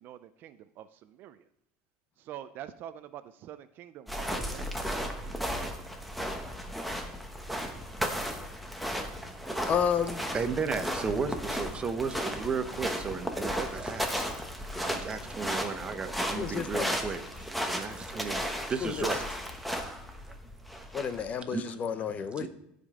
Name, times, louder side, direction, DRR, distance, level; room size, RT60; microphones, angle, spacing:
voice 1, 0.0-1.4 2.2-5.4, right 11 dB, 50° right, 13 dB, 0.4 m, -46 dB
sound 1, 4.1-21.3, equal, ahead, 1.0 m, -35 dB
voice 2, 9.7-10.2 16.3-17.0 18.8-19.1 20.9-22.5, left 7 dB, 35° left, 11 dB, 0.6 m, -31 dB
voice 3, 10.3-14.3 14.6-18.4 18.7-19.3 21.1-21.8 22.4-22.5, right 5 dB, 25° right, 9 dB, 0.8 m, -34 dB
15.5 x 5.1 x 3.6 m, 0.80 s
supercardioid pair, 135°, 5 cm